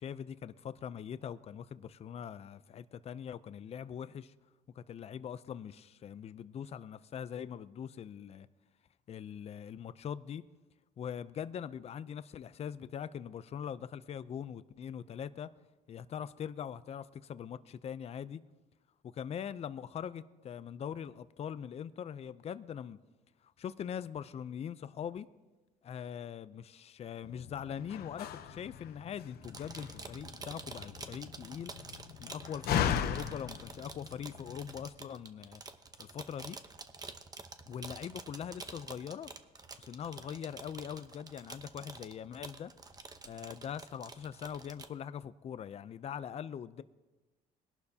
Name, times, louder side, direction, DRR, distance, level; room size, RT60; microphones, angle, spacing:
voice 1, 0.0-4.3 4.7-8.5 9.1-10.4 11.0-15.5 15.9-18.4 19.0-23.0 23.6-25.3 25.8-31.7 32.2-35.6 36.0-36.6 37.6-39.3 39.8-42.7 43.3-46.8, left 8 dB, 40° left, 0.5 m, -42 dB
Slam, 27.2-34.9, left 9 dB, 70° left, 0.8 m, -38 dB
sound 1, 29.4-44.9, right 3 dB, 20° right, 0.8 m, -48 dB
21.0 x 11.5 x 2.8 m
cardioid pair, 110°, 17 cm